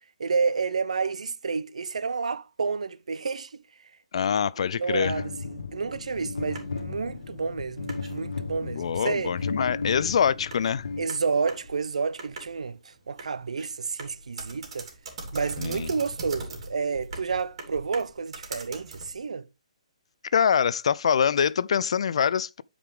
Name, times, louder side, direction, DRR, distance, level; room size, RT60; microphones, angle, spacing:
voice 1, 0.2-3.6 4.6-5.3 5.7-9.3 11.0-14.9 15.3-19.5, right 5 dB, 75° right, 0.6 m, -30 dB
voice 2, 4.1-5.2 8.6-10.9 15.6-15.9 20.3-22.6, left 7 dB, 60° left, 0.3 m, -24 dB
sound 1, 5.1-11.7, left 4 dB, 80° left, 1.0 m, -35 dB
sound 2, 6.0-19.2, right 2 dB, 55° right, 3.1 m, -43 dB
8.2 x 5.0 x 3.4 m
hypercardioid pair, 145°, 4 cm